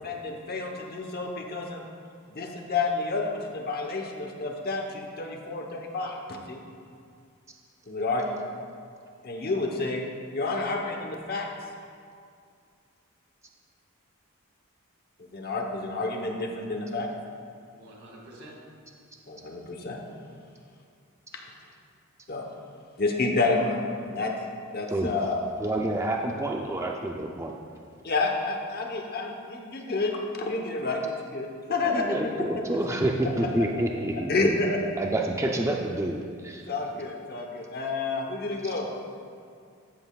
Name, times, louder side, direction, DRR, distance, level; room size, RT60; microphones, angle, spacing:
voice 1, 0.0-1.8 2.3-6.6 7.9-8.5 9.2-10.0 10.3-11.5 15.3-17.1 19.3-20.0 22.3-22.4 23.0-23.8 24.0-24.3 24.7-25.4 28.0-31.0 31.3-32.1 34.3-34.8 36.7-38.9, left 3 dB, 45° left, 2 dB, 0.9 m, -29 dB
voice 2, 17.7-18.6 32.8-33.8, equal, 85° right, -2 dB, 1.9 m, -46 dB
voice 3, 25.6-27.5 31.8-34.6 35.0-36.6, right 1 dB, 15° right, 1 dB, 0.4 m, -28 dB
13.0 x 7.9 x 2.3 m, 2.3 s
head